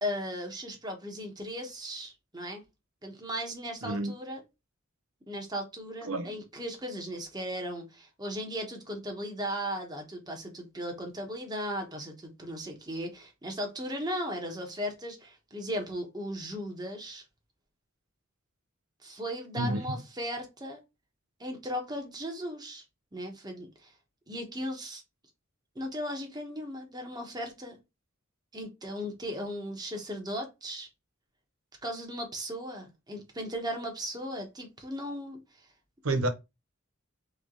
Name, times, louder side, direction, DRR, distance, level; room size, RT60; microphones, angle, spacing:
voice 1, 0.0-2.6 3.0-4.4 5.3-17.2 19.0-20.8 21.4-22.8 23.1-23.9 24.3-25.0 25.7-27.8 28.5-30.9 31.8-35.4, equal, 20° right, 1.1 m, -37 dB
voice 2, 3.8-4.1 6.0-6.4 19.6-19.8 36.0-36.3, right 2 dB, 85° right, 0.7 m, -29 dB
3.5 x 3.3 x 3.8 m
head